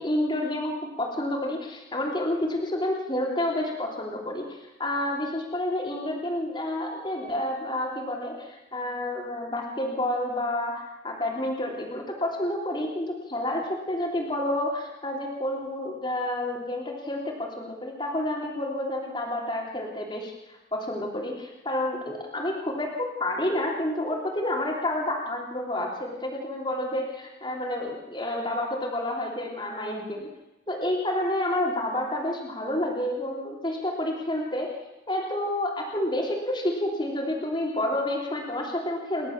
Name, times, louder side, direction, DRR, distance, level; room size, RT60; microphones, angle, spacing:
voice 1, 0.0-20.3 20.7-30.3 30.7-34.8 35.1-39.3, left 1 dB, 25° left, -1 dB, 3.4 m, -29 dB
29.0 x 12.5 x 7.4 m, 0.98 s
head